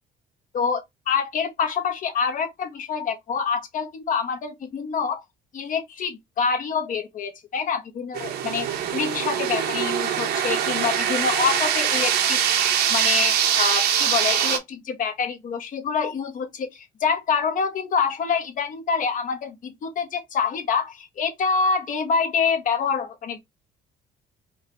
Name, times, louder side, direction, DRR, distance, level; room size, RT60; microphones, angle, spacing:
voice 1, 0.5-5.2 5.5-12.4 12.9-23.4, left 6 dB, 50° left, 1.1 m, -26 dB
sound 1, 8.1-14.6, right 9 dB, 70° right, 0.9 m, -23 dB
4.5 x 2.3 x 2.8 m
cardioid pair, 110°, 17 cm